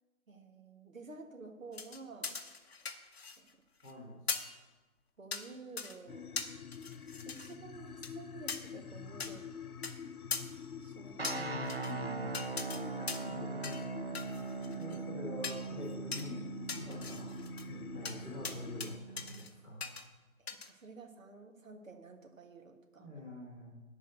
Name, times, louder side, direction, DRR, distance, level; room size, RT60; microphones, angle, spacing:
voice 1, 0.3-2.3 3.4-3.5 5.2-6.4 7.2-9.5 10.8-11.6 12.5-13.2 16.8-16.9 20.4-23.1, right 3 dB, 65° right, 4 dB, 1.7 m, -51 dB
sound 1, 1.7-3.5 3.8-3.9 4.3-4.6 5.3-5.5 5.8-6.0 6.4-7.5 8.0-8.1 8.5-8.6 9.2-9.3 9.8-9.9 10.3-10.4 11.2-11.9 12.3-12.8 13.1-13.3 13.6-13.9 14.2-15.0 15.4-15.6 16.1-16.3 16.7-17.7 18.1-18.2 18.4-18.9 19.2-19.5 19.8-20.0 20.5-20.7, left 5 dB, 45° left, 0.9 m, -40 dB
voice 2, 3.8-4.4 11.3-12.3 13.2-14.2 14.7-19.9 23.0-23.8, left 1 dB, 10° right, -10 dB, 1.5 m, -46 dB
sound 2, 6.1-19.0, left 7 dB, 80° left, 0.7 m, -47 dB
sound 3, 11.2-19.4, right 4 dB, 45° right, 0.5 m, -41 dB
11.0 x 5.4 x 7.8 m, 1.2 s
figure-of-eight pair, 165°, 43 cm